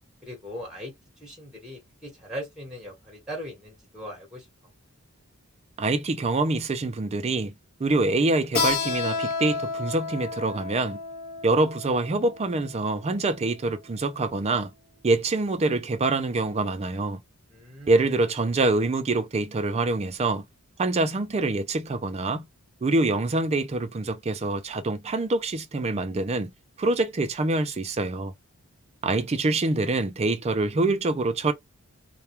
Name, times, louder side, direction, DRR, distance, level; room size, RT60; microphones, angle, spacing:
voice 1, 0.2-0.9 1.2-4.4 17.5-18.0, equal, 5° right, 1.1 m, -39 dB
voice 2, 5.8-7.5 7.8-11.0 11.4-14.7 15.0-17.2 17.9-20.4 20.8-22.5 22.8-26.5 26.8-28.3 29.0-31.5, right 2 dB, 30° right, 0.4 m, -25 dB
Keyboard (musical), 8.6-13.8, left 5 dB, 45° left, 0.7 m, -31 dB
2.2 x 2.2 x 2.9 m
head